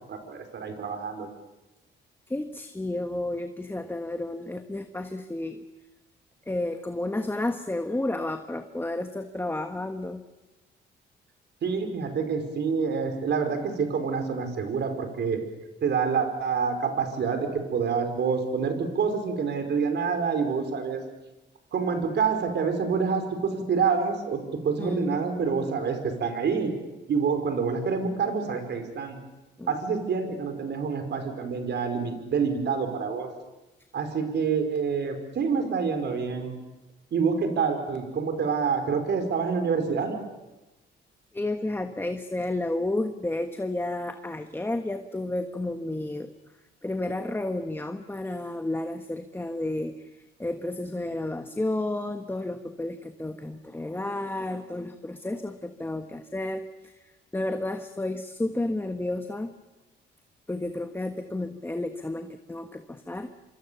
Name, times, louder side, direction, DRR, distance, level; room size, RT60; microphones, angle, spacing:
voice 1, 0.1-1.3 11.6-15.4 15.8-21.0 21.7-26.7 27.1-29.2 29.7-33.3 33.9-36.5 37.1-40.2, right 5 dB, 60° right, 6 dB, 5.1 m, -27 dB
voice 2, 2.3-5.6 6.4-10.2 24.8-25.7 29.6-29.8 41.3-46.3 46.8-59.5 60.5-63.3, left 2 dB, 10° left, 7 dB, 1.4 m, -32 dB
26.5 x 25.0 x 7.1 m, 1.0 s
cardioid pair, 90°, 20 cm